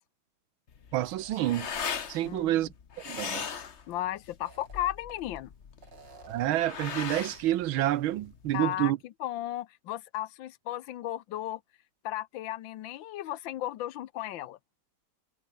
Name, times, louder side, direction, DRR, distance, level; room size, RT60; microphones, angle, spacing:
sound 1, 0.7-8.6, left 6 dB, 40° left, 1.3 m, -39 dB
sound 2, 0.9-2.0 2.4-2.5 4.3-5.4 5.8-6.7, right 4 dB, 55° right, 3.7 m, -54 dB
voice 1, 0.9-1.7 2.1-2.7 3.1-3.5 6.3-9.0, right 14 dB, 80° right, 1.6 m, -28 dB
voice 2, 3.9-5.5 8.5-8.9 9.2-11.6 12.0-14.6, left 13 dB, 75° left, 1.5 m, -35 dB
omnidirectional pair, 2.2 m